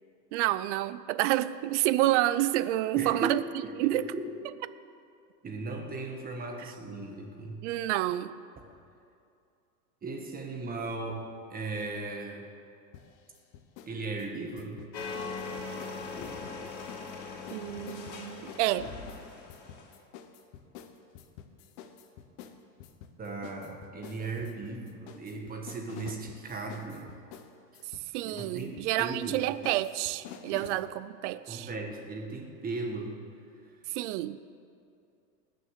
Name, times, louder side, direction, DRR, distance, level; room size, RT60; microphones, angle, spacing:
voice 1, 0.3-3.4 3.8-4.0 7.6-8.4 17.5-18.9 28.1-31.7 33.9-34.4, right 15 dB, 45° right, 0.5 m, -29 dB
voice 2, 2.9-4.2 5.4-7.6 10.0-11.2 11.5-12.5 13.9-14.8 23.2-27.1 28.2-29.5 30.5-30.6 31.5-33.2, right 3 dB, 15° right, 1.7 m, -37 dB
sound 1, 12.9-13.9 14.2-17.1 17.5-30.8, left 8 dB, 50° left, 1.1 m, -49 dB
sound 2, 14.9-19.9, left 4 dB, 85° left, 2.6 m, -40 dB
19.0 x 6.8 x 6.6 m
supercardioid pair, 135°, 50 cm